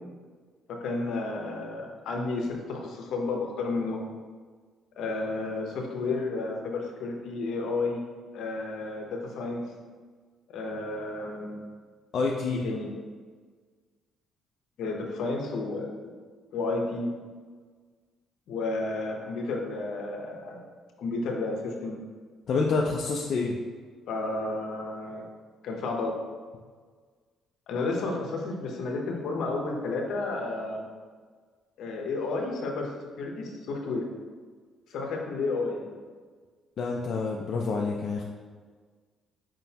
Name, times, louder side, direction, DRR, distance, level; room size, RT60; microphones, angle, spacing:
voice 1, 0.8-4.0 5.0-8.0 8.3-9.6 10.5-11.6 12.6-12.9 14.8-15.9 16.5-17.1 18.5-20.6 21.0-22.0 24.1-25.3 25.6-26.1 27.7-30.9 31.8-32.9 33.2-34.1 34.9-35.9, left 3 dB, 70° left, 1 dB, 0.8 m, -31 dB
voice 2, 12.1-12.6 22.5-23.6 36.8-38.2, left 4 dB, 50° left, -1 dB, 0.4 m, -27 dB
4.9 x 3.8 x 2.8 m, 1.5 s
cardioid pair, 120°, 0 cm